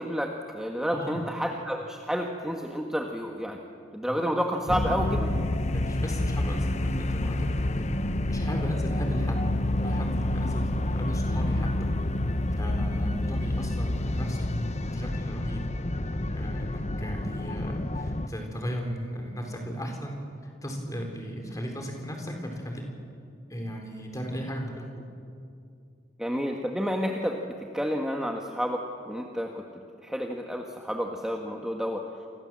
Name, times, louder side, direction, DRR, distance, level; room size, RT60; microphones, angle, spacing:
voice 1, 0.0-3.6 3.9-5.3 26.2-29.7 30.0-32.1, equal, 5° right, 1 dB, 1.5 m, -30 dB
voice 2, 0.9-1.3 4.1-4.2 5.7-7.5 7.8-9.4 9.8-11.7 12.6-14.5 14.9-15.6 16.3-22.8 23.5-25.0, equal, 20° left, 3 dB, 4.3 m, -36 dB
sound 1, 4.7-18.3, left 1 dB, 35° left, 0.9 m, -28 dB
30.0 x 25.0 x 7.7 m, 2.4 s
head